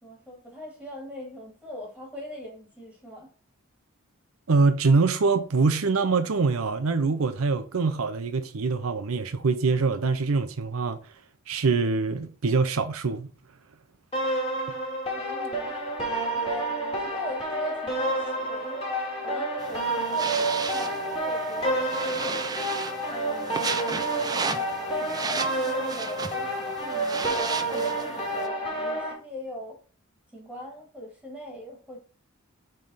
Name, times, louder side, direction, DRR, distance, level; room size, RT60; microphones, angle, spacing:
voice 1, 0.0-3.3 15.1-15.7 16.3-22.6 23.1-23.9 24.4-29.8 30.3-32.0, left 1 dB, 5° left, 1.7 m, -41 dB
voice 2, 4.5-11.0 11.5-13.3, right 4 dB, 80° right, 0.6 m, -24 dB
sound 1, 14.1-29.1, right 1 dB, 25° left, 2.0 m, -29 dB
sound 2, 19.6-28.5, right 4 dB, 20° right, 0.4 m, -34 dB
7.4 x 3.3 x 4.0 m
head